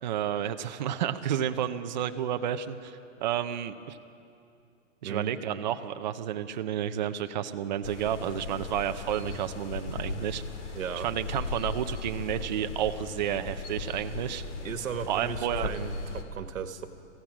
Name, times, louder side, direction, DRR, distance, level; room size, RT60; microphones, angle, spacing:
voice 1, 0.0-4.0 5.0-10.4 11.0-14.4 15.1-15.7, right 10 dB, 35° right, 9 dB, 0.7 m, -31 dB
sound 1, 7.8-16.2, left 3 dB, 65° left, 2.8 m, -37 dB
voice 2, 10.7-11.1 14.6-16.9, right 7 dB, 85° right, 8 dB, 1.6 m, -36 dB
26.0 x 16.0 x 6.2 m, 2.5 s
hypercardioid pair, 170°, 39 cm